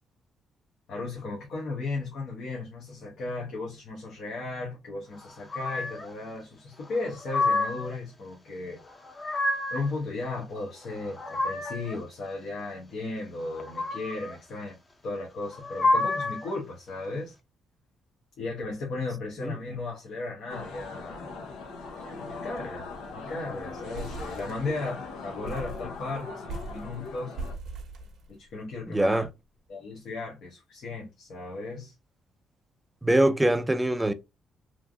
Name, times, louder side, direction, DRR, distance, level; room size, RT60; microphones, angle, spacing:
voice 1, 0.9-8.8 9.7-17.4 18.4-21.6 22.0-22.9 23.1-27.4 28.3-29.3 29.7-31.9, left 3 dB, 70° left, 1.0 m, -36 dB
sound 1, 5.5-6.1 6.9-7.9 8.9-9.9 10.8-12.0 13.5-14.4 15.5-16.5, left 2 dB, 25° left, 0.7 m, -29 dB
sound 2, 20.5-27.6, left 3 dB, 90° left, 0.6 m, -40 dB
sound 3, 21.9-22.2 22.4-22.5 22.9-23.2 23.6-25.0 25.4-28.7, right 2 dB, 70° right, 0.8 m, -41 dB
voice 2, 28.9-29.3 33.0-34.1, right 1 dB, 10° right, 0.4 m, -23 dB
3.2 x 2.5 x 2.2 m
cardioid pair, 90°, 0 cm